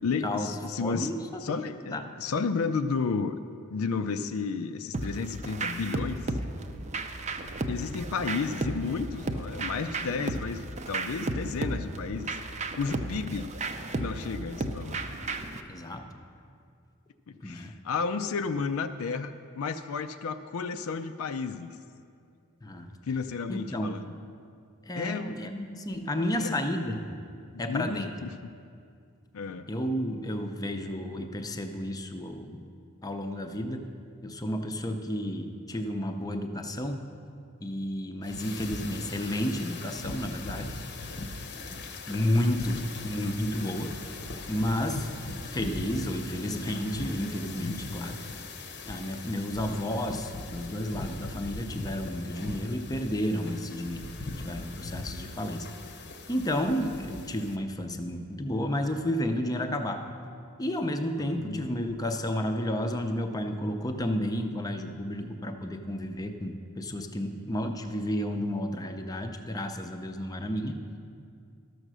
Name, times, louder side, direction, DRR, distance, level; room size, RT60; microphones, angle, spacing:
voice 1, 0.0-1.1 1.4-3.3 3.7-6.2 7.7-12.4 12.7-13.5 14.0-15.0 17.3-21.8 23.1-24.2 25.0-25.4 26.4-26.5 27.5-28.3 29.3-29.7 42.7-42.8 47.6-47.8 61.2-61.8, left 5 dB, 75° left, 9 dB, 0.5 m, -32 dB
voice 2, 0.8-1.4 1.9-2.0 15.7-16.1 17.4-17.7 22.6-22.9 23.5-24.0 24.9-27.0 27.6-28.1 29.7-32.7 33.0-33.9 34.2-37.0 37.6-40.7 41.7-41.8 42.1-44.0 44.5-45.1 45.4-48.2 48.8-55.7 56.3-60.0 60.6-70.8, left 1 dB, 15° left, 5 dB, 0.6 m, -31 dB
sound 1, 4.9-15.6, right 2 dB, 35° right, 0.5 m, -34 dB
sound 2, 38.2-57.6, left 3 dB, 55° left, 0.8 m, -40 dB
12.5 x 6.6 x 6.2 m, 2.3 s
head